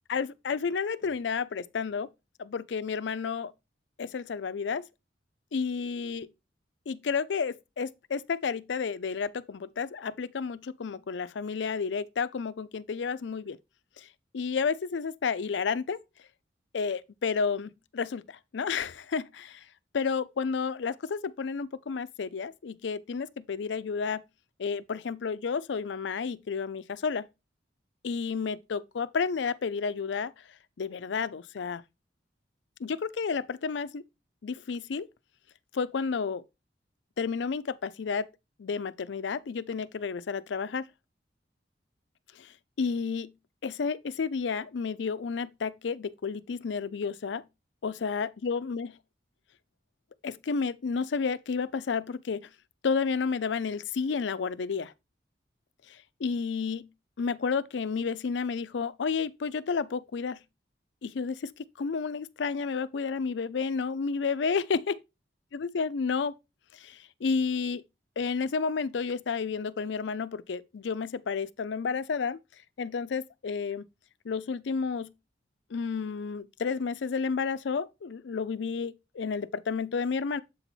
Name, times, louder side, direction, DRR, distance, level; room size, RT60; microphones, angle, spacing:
voice 1, 0.1-2.1 2.4-3.5 4.0-4.8 5.5-6.3 6.9-13.6 14.0-14.1 14.3-16.0 16.7-19.6 19.9-24.2 24.6-27.3 28.0-30.3 30.8-31.8 32.8-34.0 34.4-35.1 35.7-36.4 37.2-38.3 38.6-40.9 42.4-42.5 42.8-43.3 43.6-47.4 47.8-48.9 50.2-52.5 52.8-54.9 55.9-56.9 57.2-60.4 61.0-65.0 65.5-66.3 66.7-67.8 68.2-72.4 72.8-73.9 74.2-75.1 75.7-80.4, left 5 dB, 80° left, 0.4 m, -31 dB
7.7 x 4.1 x 4.3 m
head